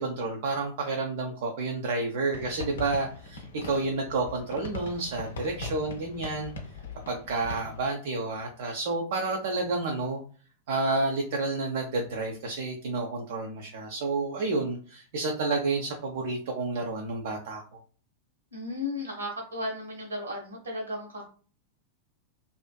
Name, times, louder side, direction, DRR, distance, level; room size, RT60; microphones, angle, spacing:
voice 1, 0.0-6.5 7.1-10.2 10.7-17.6, right 3 dB, 55° right, 1 dB, 0.4 m, -30 dB
sound 1, 2.3-7.9, left 4 dB, 65° left, 0.5 m, -41 dB
voice 2, 3.6-3.9 18.5-21.2, left 1 dB, 70° right, 1 dB, 1.0 m, -35 dB
2.4 x 2.4 x 2.2 m, 0.40 s
figure-of-eight pair, 90°, 0 cm